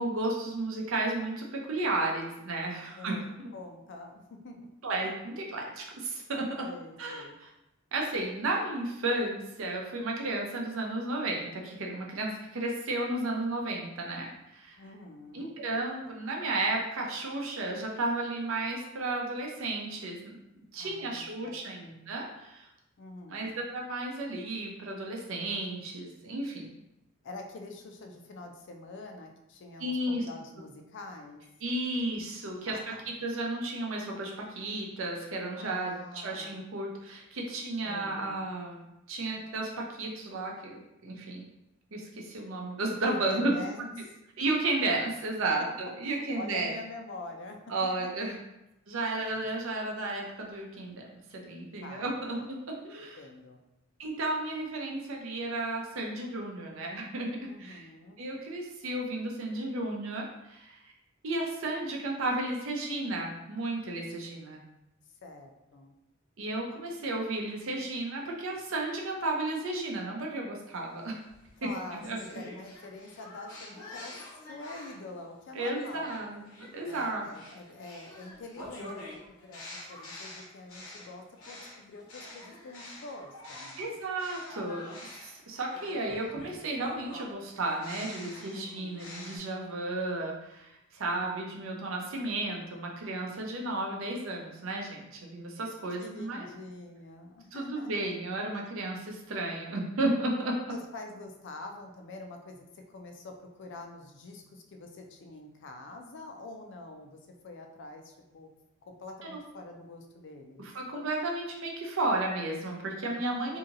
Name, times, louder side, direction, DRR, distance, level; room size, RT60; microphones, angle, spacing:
voice 1, 0.0-3.2 4.8-6.6 7.0-7.2 7.9-14.8 15.3-20.4 20.7-22.7 23.3-26.7 29.8-30.2 31.6-32.9 33.2-38.8 39.1-41.4 41.9-43.5 44.4-46.7 47.7-48.4 48.9-53.2 54.0-57.3 57.6-57.8 58.2-60.9 61.2-64.6 66.4-71.1 71.6-72.2 75.5-77.2 83.8-84.9 85.2-96.5 97.5-100.6 109.2-109.4 110.7-113.6, right 2 dB, 70° right, 0 dB, 0.6 m, -33 dB
voice 2, 3.0-4.7 6.6-7.3 14.8-15.6 20.8-21.9 23.0-23.4 27.2-31.4 32.7-33.0 35.5-36.6 37.8-38.5 43.1-43.9 46.1-47.6 48.3-48.4 51.8-52.5 53.2-53.6 57.4-58.2 65.2-65.9 71.6-72.1 72.3-76.2 76.8-79.6 79.9-83.9 88.5-89.3 96.0-98.1 100.7-107.2 107.4-108.5 108.8-110.7 113.1-113.6, left 2 dB, 60° left, 4 dB, 0.4 m, -46 dB
sound 1, 71.0-75.1 75.6-83.9 84.2-89.4, left 1 dB, 85° left, 0.9 m, -47 dB
2.8 x 2.7 x 2.5 m, 0.90 s
head